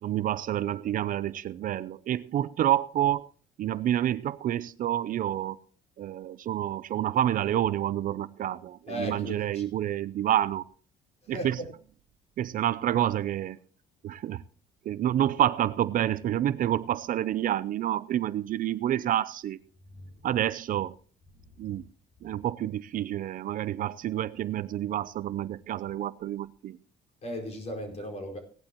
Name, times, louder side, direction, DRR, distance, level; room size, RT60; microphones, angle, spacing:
voice 1, 0.0-3.3 3.6-5.6 6.0-10.6 11.3-11.6 12.4-13.6 14.0-14.4 14.9-19.6 20.2-21.0 21.6-21.9 22.2-26.8, right 12 dB, 55° right, 17 dB, 0.5 m, -28 dB
voice 2, 8.9-9.6 11.2-11.7 19.9-20.3 21.3-21.8 22.3-22.5 27.2-28.4, equal, 40° left, 1 dB, 5.0 m, -37 dB
17.0 x 11.5 x 3.0 m, 0.42 s
cardioid pair, 110°, 17 cm